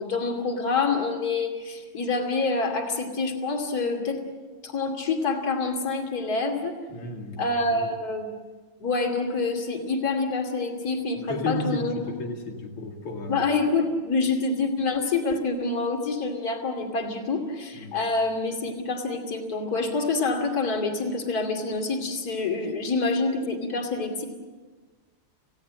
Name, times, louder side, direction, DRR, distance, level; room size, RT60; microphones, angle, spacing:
voice 1, 0.0-4.2 4.6-6.8 7.4-8.3 8.8-12.1 13.3-24.2, left 3 dB, 45° left, 3 dB, 3.1 m, -27 dB
voice 2, 6.9-7.4 7.7-7.9 11.3-13.4 17.8-18.0, left 2 dB, 85° left, 1 dB, 3.2 m, -33 dB
29.0 x 17.0 x 7.5 m, 1.4 s
omnidirectional pair, 2.4 m